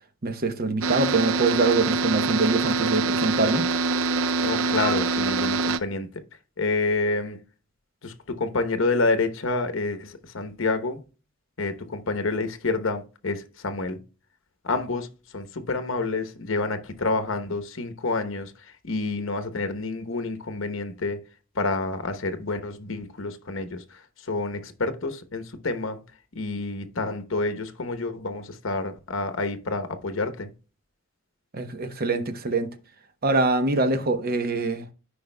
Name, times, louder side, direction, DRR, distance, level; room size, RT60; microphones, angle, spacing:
voice 1, 0.2-3.7 31.5-32.7 33.2-34.9, right 3 dB, 50° right, 0.9 m, -24 dB
sound 1, 0.8-5.8, right 3 dB, 75° right, 0.5 m, -24 dB
voice 2, 4.4-6.1 6.6-7.4 8.0-11.0 11.6-14.0 14.6-21.2 21.5-26.0 26.3-30.5, left 3 dB, 75° left, 1.0 m, -28 dB
13.0 x 5.1 x 2.2 m
head